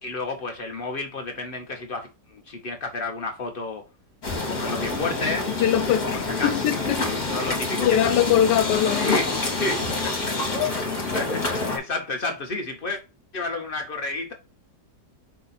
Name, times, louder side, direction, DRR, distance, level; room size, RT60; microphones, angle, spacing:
voice 1, 0.0-3.8 4.5-5.5 6.4-6.5 7.3-7.9 9.0-9.3 9.6-10.2 11.1-13.0 13.3-14.3, left 3 dB, 60° left, 0.5 m, -30 dB
sound 1, 4.2-11.8, left 3 dB, 30° left, 1.3 m, -27 dB
voice 2, 5.6-7.2 7.8-9.2, left 11 dB, 85° left, 1.2 m, -22 dB
4.7 x 2.8 x 3.9 m
omnidirectional pair, 1.8 m